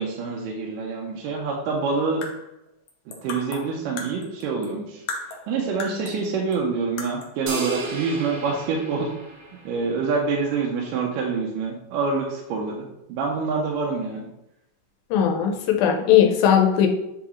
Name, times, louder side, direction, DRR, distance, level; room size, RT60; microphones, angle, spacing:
voice 1, 0.0-2.2 3.2-5.0 5.5-9.1 9.7-14.3, right 4 dB, 75° right, -1 dB, 2.3 m, -26 dB
sound 1, 2.0-4.8 5.1-6.3 6.5-6.6 7.0-7.4, left 4 dB, 70° left, 1.6 m, -36 dB
sound 2, 7.5-10.0, right 2 dB, 55° right, 1.8 m, -33 dB
voice 2, 15.1-16.9, left 9 dB, 90° left, 3 dB, 2.6 m, -18 dB
8.6 x 4.5 x 3.1 m, 0.86 s
omnidirectional pair, 4.1 m